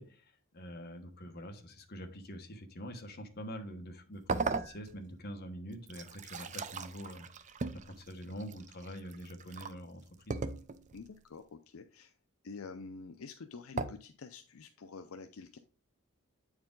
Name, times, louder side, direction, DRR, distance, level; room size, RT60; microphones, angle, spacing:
voice 1, 0.0-7.3 7.7-10.4, equal, 50° left, 5 dB, 1.3 m, -45 dB
sound 1, 4.3-5.2 5.7-9.8 10.3-11.0 13.8-13.9, right 4 dB, 35° right, 0.5 m, -38 dB
voice 2, 10.9-12.1 12.4-15.6, left 4 dB, 70° left, 8 dB, 0.5 m, -47 dB
8.3 x 4.8 x 3.8 m, 0.37 s
head